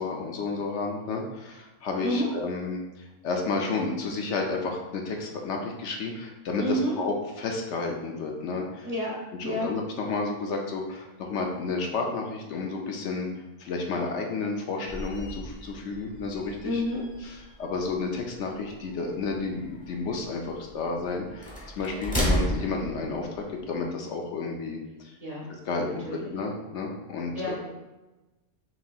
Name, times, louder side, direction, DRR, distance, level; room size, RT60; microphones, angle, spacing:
voice 1, 0.0-8.9 9.4-13.3 13.6-16.8 17.2-17.3 17.6-23.3 23.7-24.8 25.6-27.6, left 4 dB, 70° left, 1 dB, 0.9 m, -31 dB
voice 2, 6.6-7.0 8.8-9.2 9.4-9.7 16.6-17.0 25.2-25.5 26.0-26.3 27.3-27.6, equal, 35° right, -5 dB, 0.9 m, -29 dB
sound 1, 14.9-23.8, equal, 5° left, 0.8 m, -34 dB
5.9 x 2.8 x 2.3 m, 1.1 s
omnidirectional pair, 1.3 m